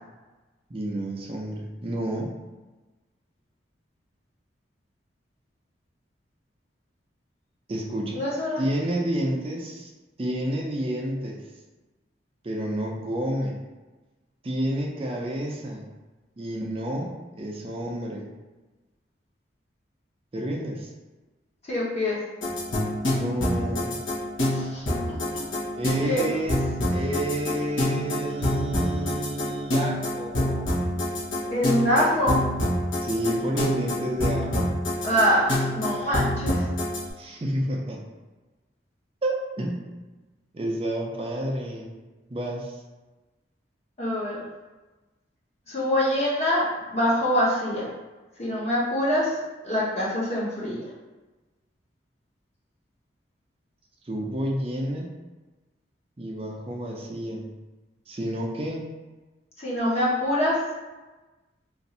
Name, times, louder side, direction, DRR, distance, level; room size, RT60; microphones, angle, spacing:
voice 1, 0.7-2.3 7.7-8.2 8.6-9.9 10.2-11.4 12.4-13.6 14.4-15.9 16.4-18.3 20.3-20.9 23.1-24.0 25.8-26.6 26.9-31.0 33.0-34.7 37.2-38.0 39.2-39.9 40.5-42.0 42.3-42.8 54.0-55.1 56.2-57.5 58.1-58.8, right 1 dB, 30° right, -1 dB, 0.4 m, -30 dB
voice 2, 8.1-8.6 21.6-22.2 24.5-24.8 25.3-25.4 26.0-26.2 31.5-32.4 35.0-36.7 44.0-44.4 45.7-47.9 48.4-49.4 49.6-50.8 59.6-60.6, equal, 35° left, -6 dB, 0.9 m, -24 dB
sound 1, 22.4-37.0, left 1 dB, 80° left, 0.9 m, -26 dB
2.6 x 2.4 x 4.1 m, 1.2 s
head